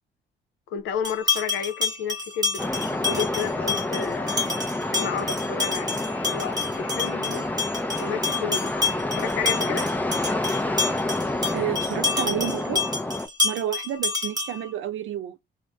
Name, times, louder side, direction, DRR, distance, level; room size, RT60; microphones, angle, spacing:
voice 1, 0.7-4.5 4.9-6.0 6.3-7.5 8.0-8.7 9.1-9.9, left 7 dB, 80° left, 0.6 m, -31 dB
sound 1, 1.0-14.7, left 4 dB, 20° right, 1.1 m, -29 dB
sound 2, 2.6-13.3, left 2 dB, 10° left, 0.5 m, -28 dB
voice 2, 11.5-12.8 13.4-15.4, right 10 dB, 80° right, 0.7 m, -30 dB
2.6 x 2.1 x 3.3 m
cardioid pair, 90°, 20 cm